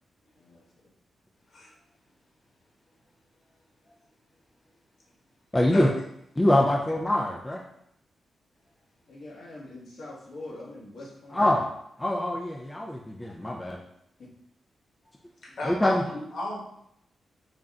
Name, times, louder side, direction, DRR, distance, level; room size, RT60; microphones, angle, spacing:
voice 1, 0.4-0.9 9.1-11.5 14.2-14.3, left 2 dB, 75° left, -5 dB, 1.2 m, -44 dB
voice 2, 5.5-5.9 6.4-7.6 11.3-11.7 12.0-13.8 15.6-16.0, left 1 dB, 15° left, 0 dB, 0.3 m, -24 dB
voice 3, 15.4-16.6, left 1 dB, 60° left, -4 dB, 1.4 m, -34 dB
3.9 x 2.2 x 3.5 m, 0.75 s
wide cardioid pair, 120°, 0 cm